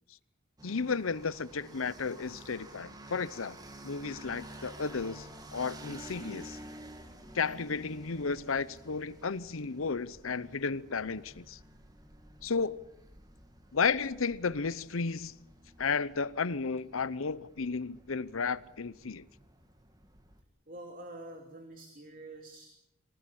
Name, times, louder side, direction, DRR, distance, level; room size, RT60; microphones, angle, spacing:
voice 1, 0.6-3.6 3.8-6.6 7.3-11.6 12.4-12.8 13.7-15.4 15.8-19.3, left 5 dB, 85° left, 0.8 m, -33 dB
sound 1, 0.6-20.4, right 1 dB, 20° right, 1.9 m, -51 dB
voice 2, 20.7-22.7, right 1 dB, 40° right, 3.0 m, -46 dB
24.0 x 19.0 x 8.6 m
head